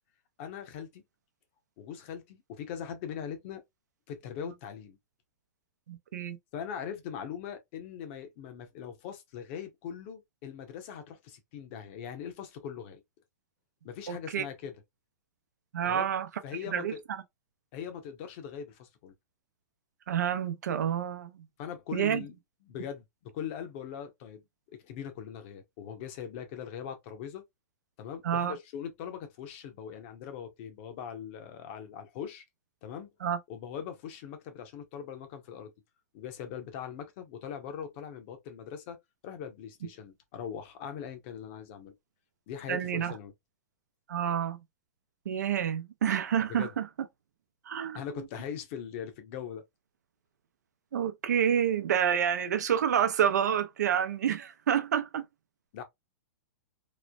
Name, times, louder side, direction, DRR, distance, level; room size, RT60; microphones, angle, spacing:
voice 1, 0.4-1.0 1.8-3.6 4.1-5.0 6.5-13.0 13.8-14.7 15.8-16.1 16.4-17.0 17.7-19.1 21.6-22.3 22.6-24.4 24.8-27.4 28.0-32.4 32.8-33.1 33.5-35.7 36.1-39.0 39.2-41.9 42.5-43.3 46.6-46.7 47.9-49.6 55.7-55.8, left 8 dB, 45° left, 0.8 m, -41 dB
voice 2, 5.9-6.4 14.1-14.4 15.7-16.3 16.7-16.9 20.1-21.5 21.9-22.2 28.2-28.6 33.2-33.4 42.7-43.1 44.1-44.6 45.3-46.9 47.7-48.0 50.9-55.3, right 9 dB, 85° right, 0.6 m, -28 dB
3.1 x 2.0 x 2.3 m
hypercardioid pair, 140°, 9 cm